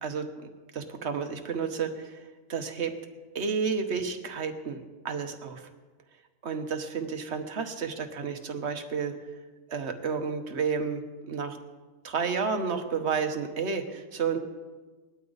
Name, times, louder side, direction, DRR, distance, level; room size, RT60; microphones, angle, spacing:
voice 1, 0.0-2.9 3.3-4.8 5.0-5.7 6.4-9.1 9.7-11.6 12.0-14.4, right 6 dB, 50° right, 6 dB, 1.4 m, -31 dB
19.5 x 12.5 x 4.0 m, 1.3 s
omnidirectional pair, 1.6 m